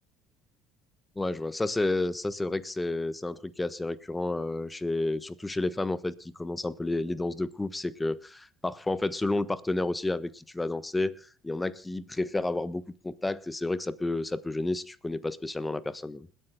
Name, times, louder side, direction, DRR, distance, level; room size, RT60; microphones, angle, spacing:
voice 1, 1.2-16.3, left 2 dB, 15° left, 16 dB, 1.2 m, -31 dB
29.0 x 10.0 x 2.3 m, 0.36 s
figure-of-eight pair, 60°, 0 cm